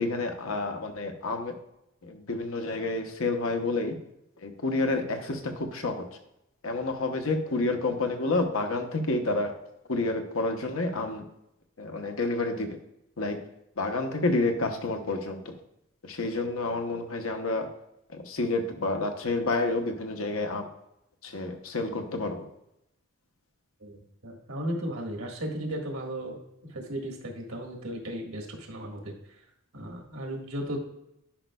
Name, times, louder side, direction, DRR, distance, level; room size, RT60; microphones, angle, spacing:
voice 1, 0.0-1.5 2.0-4.0 4.4-6.0 6.6-9.5 9.9-11.2 11.8-12.8 13.2-13.4 13.8-15.5 16.0-17.7 18.1-20.7 21.2-22.5, left 2 dB, 75° left, 4 dB, 1.0 m, -29 dB
voice 2, 23.8-26.4 26.7-29.2 29.7-30.8, equal, 75° right, 1 dB, 1.6 m, -35 dB
10.5 x 5.2 x 2.3 m, 0.82 s
head